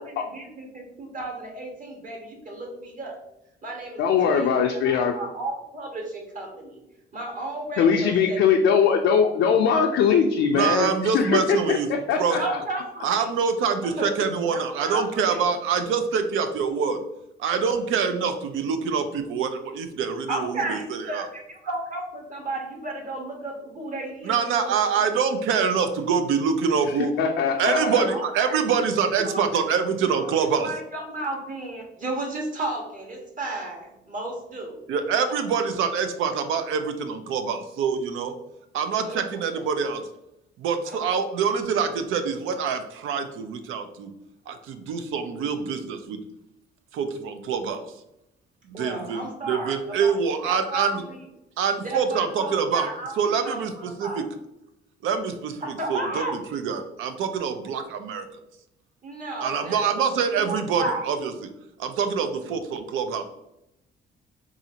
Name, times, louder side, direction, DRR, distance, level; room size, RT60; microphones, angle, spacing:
voice 1, 0.0-3.2 3.6-6.8 7.1-8.4 12.1-13.2 13.8-14.1 14.5-15.4 20.3-24.9 27.7-28.6 29.2-29.6 30.0-30.3 30.6-34.8 39.0-39.2 39.5-39.6 40.9-41.1 48.7-50.2 50.4-51.2 51.8-54.2 55.6-56.4 59.0-60.0 60.4-61.1, right 2 dB, 40° right, 0 dB, 1.2 m, -34 dB
voice 2, 4.0-5.2 7.8-12.6 27.2-28.1, left 6 dB, 80° left, 2 dB, 0.4 m, -21 dB
voice 3, 10.5-11.9 12.2-12.4 13.0-17.0 17.4-21.3 24.2-27.1 27.6-30.7 34.9-38.4 38.7-40.0 40.6-44.1 44.5-46.2 46.9-47.9 48.7-51.0 51.6-52.9 53.2-54.3 55.0-55.6 55.9-56.2 56.5-58.3 59.4-61.3 61.8-63.2, right 6 dB, 85° right, 8 dB, 0.5 m, -25 dB
4.0 x 2.5 x 2.7 m, 0.86 s
cardioid pair, 90°, 20 cm